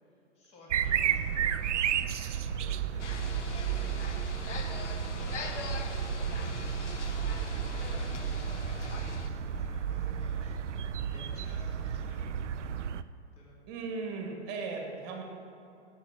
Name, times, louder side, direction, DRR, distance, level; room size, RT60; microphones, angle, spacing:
voice 1, 0.1-4.4 5.1-12.4 13.2-13.6, left 1 dB, 20° left, -4 dB, 2.2 m, -53 dB
sound 1, 0.7-13.0, right 8 dB, 90° right, 0.5 m, -32 dB
sound 2, 3.0-9.3, left 4 dB, 80° left, 1.2 m, -41 dB
voice 2, 13.7-15.2, right 4 dB, 30° right, 2 dB, 1.6 m, -37 dB
8.5 x 7.8 x 7.2 m, 2.7 s
hypercardioid pair, 140°, 35 cm